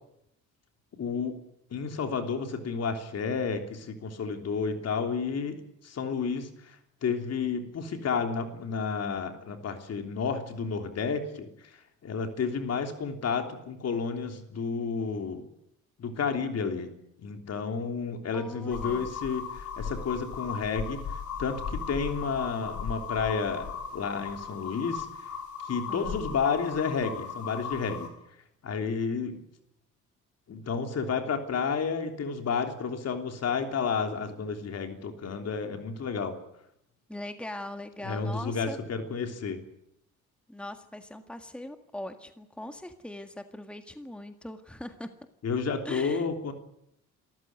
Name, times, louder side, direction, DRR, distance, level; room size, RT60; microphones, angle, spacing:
voice 1, 1.0-1.4 1.7-6.7 7.0-11.5 12.0-15.4 16.0-16.9 17.2-21.0 21.4-25.1 25.6-28.1 28.6-29.4 30.5-36.4 38.0-39.6 45.4-46.5, left 5 dB, 55° left, 6 dB, 3.4 m, -31 dB
voice 2, 18.3-19.1 25.9-26.2 37.1-38.8 40.5-45.1 45.9-46.3, left 1 dB, 5° left, 7 dB, 1.8 m, -41 dB
sound 1, 18.7-28.1, left 6 dB, 75° left, 5.6 m, -37 dB
27.0 x 14.5 x 9.5 m, 0.79 s
cardioid pair, 90°, 30 cm